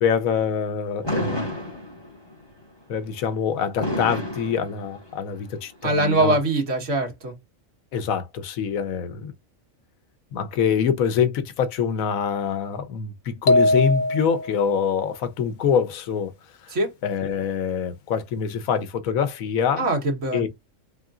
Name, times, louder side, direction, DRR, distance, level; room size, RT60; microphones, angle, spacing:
voice 1, 0.0-1.5 2.9-6.4 7.9-9.3 10.3-16.3 16.6-16.7 17.0-19.9 20.3-20.5, left 7 dB, 85° left, 1.1 m, -25 dB
Fireworks, 1.0-2.4 3.8-5.3, left 1 dB, 20° left, 2.1 m, -29 dB
voice 2, 5.8-7.3 16.7-16.9 19.8-20.5, right 2 dB, 65° right, 1.7 m, -22 dB
sound 1, 13.5-14.7, left 1 dB, 50° left, 0.6 m, -20 dB
3.8 x 3.6 x 2.4 m
omnidirectional pair, 1.4 m